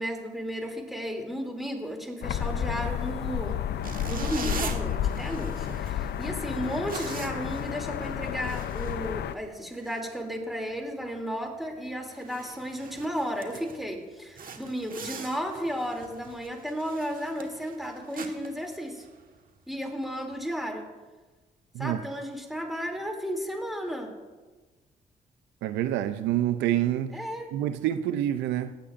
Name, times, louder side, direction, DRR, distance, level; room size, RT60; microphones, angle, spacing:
voice 1, 0.0-3.6 4.1-19.0 19.7-20.9 21.8-24.2 27.1-27.5, equal, ahead, 2.7 m, -34 dB
sound 1, 2.2-9.3, left 9 dB, 70° left, 0.5 m, -31 dB
sound 2, 3.8-9.5 9.8-10.0 10.5-10.8 11.1-11.2 11.7-11.8 12.1-13.9 14.3-19.4, right 5 dB, 55° right, 1.4 m, -42 dB
voice 2, 25.6-27.2 27.5-28.7, right 12 dB, 85° right, 0.5 m, -27 dB
20.5 x 8.4 x 2.5 m
supercardioid pair, 55°, 18 cm